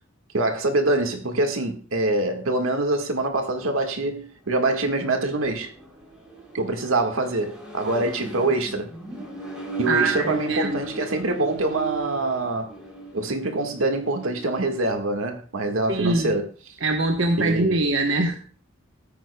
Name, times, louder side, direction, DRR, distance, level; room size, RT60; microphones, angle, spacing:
voice 1, 0.3-5.7 6.5-8.9 9.8-12.7 13.1-16.5 17.4-17.8, right 2 dB, 85° right, 1.7 m, -25 dB
Accelerating revving vroom, 4.5-14.9, right 3 dB, 5° right, 3.2 m, -37 dB
voice 2, 9.9-10.9 15.9-16.4 16.8-18.4, right 2 dB, 65° right, 1.1 m, -23 dB
19.5 x 9.0 x 2.3 m
head